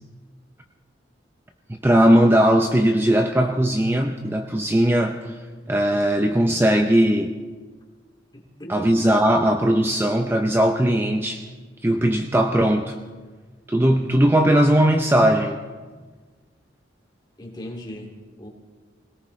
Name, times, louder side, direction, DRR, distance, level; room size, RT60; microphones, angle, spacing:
voice 1, 1.7-5.4 5.7-7.3 8.7-11.4 11.8-13.0 13.7-15.6, right 1 dB, 10° right, 4 dB, 0.5 m, -19 dB
voice 2, 8.3-8.9 17.4-18.5, equal, 20° left, 0 dB, 2.3 m, -38 dB
24.5 x 18.0 x 3.2 m, 1.4 s
head